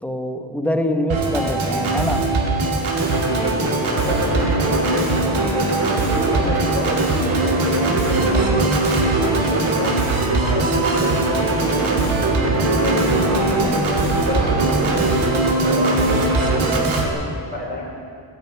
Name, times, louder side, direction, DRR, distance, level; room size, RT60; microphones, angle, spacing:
voice 1, 0.0-2.2, left 1 dB, 5° left, 4 dB, 1.1 m, -24 dB
Organ, 1.1-17.1, right 2 dB, 80° right, 2.3 m, -21 dB
sound 1, 3.0-16.7, right 2 dB, 45° right, 2.9 m, -24 dB
voice 2, 3.9-5.9 6.3-10.6 11.0-12.0 12.4-17.9, left 2 dB, 20° left, -3 dB, 4.3 m, -30 dB
13.0 x 10.5 x 8.7 m, 2.3 s
wide cardioid pair, 135°, 47 cm